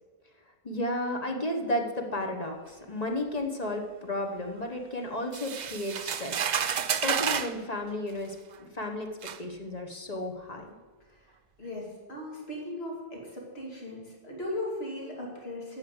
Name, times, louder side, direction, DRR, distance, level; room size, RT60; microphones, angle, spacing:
voice 1, 0.6-6.4 6.6-6.7 7.0-10.7, left 1 dB, 40° left, 2 dB, 1.3 m, -33 dB
sound 1, 5.3-7.6 8.5-8.6 9.2-9.4, right 8 dB, 55° right, 0.6 m, -30 dB
voice 2, 11.1-15.8, left 1 dB, 80° left, -2 dB, 2.8 m, -38 dB
9.3 x 6.8 x 8.0 m, 1.4 s
omnidirectional pair, 1.0 m